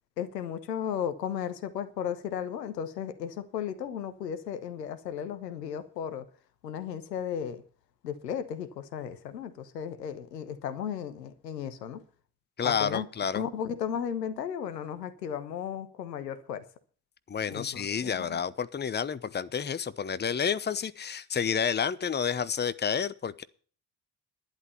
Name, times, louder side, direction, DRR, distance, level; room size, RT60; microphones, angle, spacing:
voice 1, 0.2-6.3 6.6-7.6 8.0-12.0 12.6-13.1 13.3-16.6 17.5-18.4, left 8 dB, 85° left, 1.1 m, -35 dB
voice 2, 12.6-13.4 17.3-23.4, left 7 dB, 20° left, 0.9 m, -30 dB
11.5 x 11.0 x 5.6 m
figure-of-eight pair, 45°, 48 cm